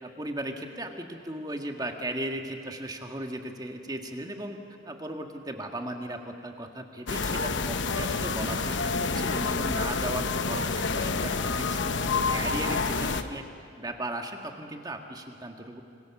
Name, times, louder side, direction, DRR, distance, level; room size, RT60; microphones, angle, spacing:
voice 1, 0.0-4.6 4.8-13.4 13.8-15.8, right 1 dB, 20° right, 4 dB, 1.8 m, -36 dB
sound 1, 7.1-13.2, left 4 dB, 60° left, 1.0 m, -28 dB
26.5 x 25.0 x 7.3 m, 2.6 s
head